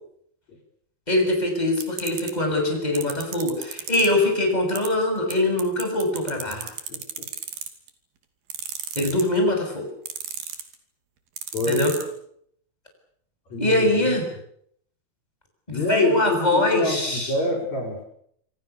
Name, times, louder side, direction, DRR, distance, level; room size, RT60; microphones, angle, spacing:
voice 1, 1.1-6.7 9.0-9.9 11.7-11.9 13.6-14.3 15.7-17.3, left 1 dB, 10° left, 3 dB, 7.4 m, -23 dB
sound 1, 1.8-2.3 3.0-4.1 4.8-4.9 5.3-5.4 5.6-7.9 8.5-9.4 10.1-10.7 11.4-12.0, right 7 dB, 85° right, 4.6 m, -33 dB
voice 2, 6.9-7.2 11.5-11.8 13.5-14.1 15.7-16.2 16.5-18.0, left 2 dB, 50° left, 0 dB, 6.0 m, -26 dB
27.0 x 26.0 x 7.1 m, 0.69 s
omnidirectional pair, 4.2 m